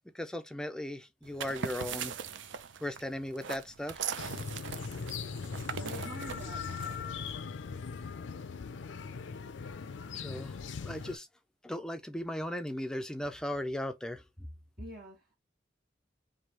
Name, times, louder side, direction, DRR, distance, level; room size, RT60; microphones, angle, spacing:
voice 1, 0.1-2.1 2.8-4.0 10.1-11.3 11.6-14.2, left 1 dB, 5° left, 0.4 m, -37 dB
sound 1, 1.2-7.3, right 7 dB, 80° right, 0.5 m, -41 dB
sound 2, 4.2-11.2, left 5 dB, 80° left, 0.4 m, -40 dB
voice 2, 5.6-6.6 14.8-15.2, right 1 dB, 55° right, 1.2 m, -46 dB
3.1 x 2.7 x 4.2 m
head